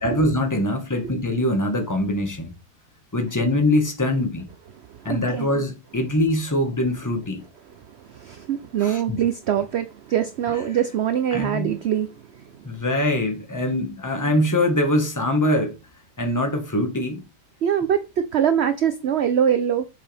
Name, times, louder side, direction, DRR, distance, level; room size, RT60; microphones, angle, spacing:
voice 1, 0.0-2.5 3.1-4.5 5.0-7.4 8.8-9.2 11.3-11.7 12.6-15.8 16.2-17.2, left 1 dB, 10° left, 1.4 m, -23 dB
voice 2, 4.8-5.5 7.8-12.7 17.6-19.9, right 9 dB, 60° right, 0.7 m, -24 dB
7.7 x 6.5 x 3.5 m
omnidirectional pair, 1.8 m